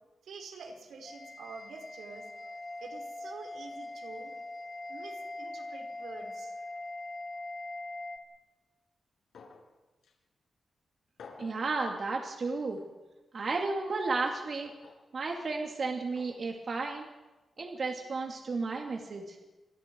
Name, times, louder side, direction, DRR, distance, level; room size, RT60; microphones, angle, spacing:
voice 1, 0.3-2.3 2.8-4.3 4.9-6.5, right 4 dB, 90° right, 3 dB, 4.9 m, -47 dB
sound 1, 1.0-8.2, left 2 dB, 25° left, 2.6 m, -42 dB
sound 2, 9.3-9.7 10.0-10.1 11.2-11.6 12.8-12.9 14.6-15.0 16.2-16.3 17.6-17.7, left 4 dB, 90° left, 7.5 m, -51 dB
voice 2, 11.4-12.8 13.3-14.7 15.1-17.1 17.6-19.4, right 3 dB, 45° right, 1 dB, 2.8 m, -33 dB
29.5 x 26.5 x 4.8 m, 1.2 s
wide cardioid pair, 130°, 0 cm